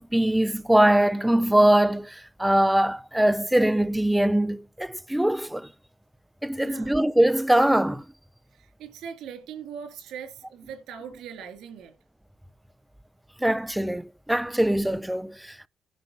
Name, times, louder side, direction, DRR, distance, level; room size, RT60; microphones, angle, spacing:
voice 1, 0.0-5.7 6.4-8.1 13.4-15.7, right 1 dB, 5° right, 0.4 m, -22 dB
voice 2, 6.5-7.0 8.5-11.9, right 7 dB, 85° right, 2.9 m, -40 dB
10.5 x 4.4 x 6.5 m
cardioid pair, 90°, 0 cm